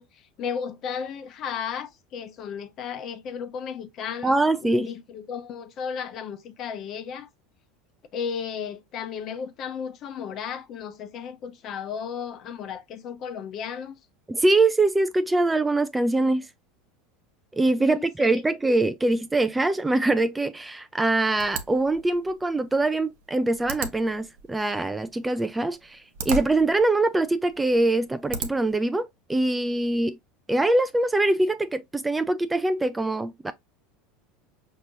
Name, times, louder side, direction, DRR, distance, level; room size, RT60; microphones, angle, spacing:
voice 1, 0.0-7.3 8.1-13.9 17.8-18.4, left 7 dB, 45° left, 0.9 m, -34 dB
voice 2, 4.2-4.9 14.3-16.5 17.5-30.2 30.5-33.5, right 2 dB, 10° right, 0.3 m, -23 dB
sound 1, 21.4-28.8, right 5 dB, 80° right, 0.8 m, -38 dB
5.2 x 2.9 x 2.7 m
supercardioid pair, 115°, 0 cm